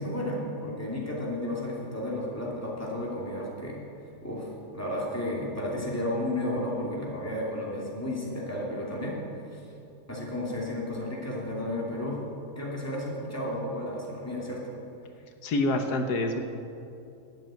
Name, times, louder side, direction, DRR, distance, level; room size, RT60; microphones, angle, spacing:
voice 1, 0.0-3.8 4.2-9.2 9.5-9.6 10.1-12.2 12.6-14.6, left 1 dB, 10° left, -4 dB, 2.7 m, -32 dB
voice 2, 15.4-16.4, left 2 dB, 85° left, 5 dB, 1.6 m, -26 dB
12.5 x 8.4 x 9.0 m, 2.6 s
omnidirectional pair, 1.7 m